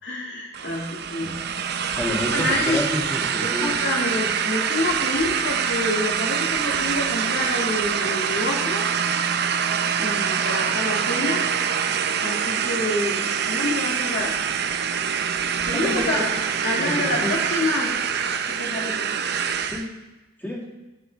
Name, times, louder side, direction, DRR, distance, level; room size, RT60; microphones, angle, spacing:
voice 1, 0.0-1.3 2.3-2.8 3.4-8.9 10.0-11.4 12.2-14.4 15.6-16.3 16.6-18.0 18.5-19.1, left 2 dB, 60° left, -2 dB, 2.2 m, -27 dB
sound 1, 0.5-19.9, right 7 dB, 55° right, 0.6 m, -25 dB
voice 2, 2.0-3.7 15.7-16.2 16.8-17.3 19.7-19.9 20.4-20.6, left 1 dB, 10° left, -4 dB, 2.0 m, -29 dB
12.0 x 9.5 x 3.5 m, 1.0 s
head